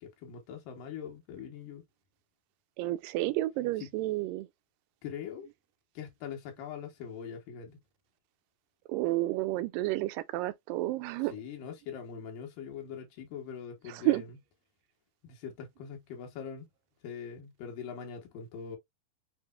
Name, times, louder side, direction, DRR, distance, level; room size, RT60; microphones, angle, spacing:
voice 1, 0.0-1.8 3.8-3.9 5.0-5.5 5.9-7.8 11.2-14.4 15.2-16.7 17.0-18.8, left 7 dB, 80° left, 2.8 m, -42 dB
voice 2, 2.8-4.5 8.9-11.3 13.9-14.2, right 17 dB, 90° right, 2.2 m, -30 dB
7.6 x 2.9 x 2.3 m
omnidirectional pair, 3.9 m